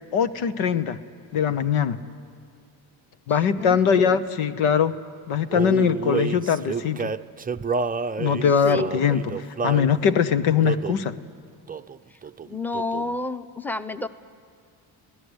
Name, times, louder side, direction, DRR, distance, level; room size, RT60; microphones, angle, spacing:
voice 1, 0.1-1.0 1.3-2.0 3.3-4.9 5.3-7.1 8.2-9.2 9.6-11.1, left 7 dB, 75° left, 12 dB, 1.1 m, -21 dB
voice 2, 3.6-4.2 8.5-9.1 12.4-14.1, left 2 dB, 5° left, 12 dB, 0.9 m, -30 dB
Male singing, 5.5-9.9 10.6-11.1 11.7-12.0 12.2-13.2, right 5 dB, 20° right, 0.6 m, -29 dB
28.0 x 17.5 x 8.1 m, 2.2 s
supercardioid pair, 55°, 50 cm